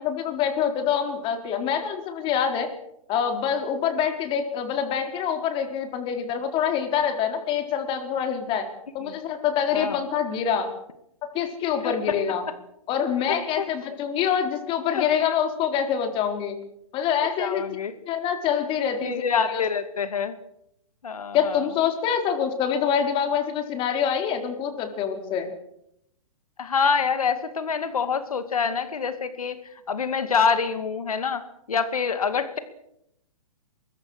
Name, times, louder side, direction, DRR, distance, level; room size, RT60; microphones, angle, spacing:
voice 1, 0.0-2.7 3.1-8.7 8.9-10.7 11.3-12.4 12.9-16.5 16.9-17.6 18.1-19.6 21.3-25.5, left 8 dB, 30° left, 6 dB, 4.6 m, -25 dB
voice 2, 13.3-13.7 14.9-15.0 17.4-17.9 19.0-20.4 21.0-21.6 26.6-29.6 29.9-31.4 31.7-32.6, left 6 dB, 80° left, 10 dB, 2.4 m, -26 dB
24.0 x 22.5 x 6.6 m, 0.80 s
hypercardioid pair, 135°, 18 cm